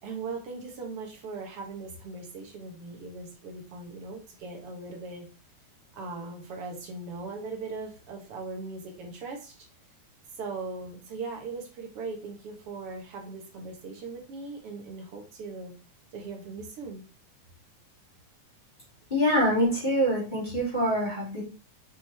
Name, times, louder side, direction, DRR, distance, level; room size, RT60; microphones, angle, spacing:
voice 1, 0.0-5.3 5.9-9.7 10.4-15.7 16.1-17.0, right 3 dB, 55° right, 2 dB, 2.1 m, -39 dB
voice 2, 19.1-21.4, equal, 15° left, -7 dB, 3.3 m, -25 dB
6.3 x 6.2 x 3.5 m, 0.34 s
omnidirectional pair, 3.4 m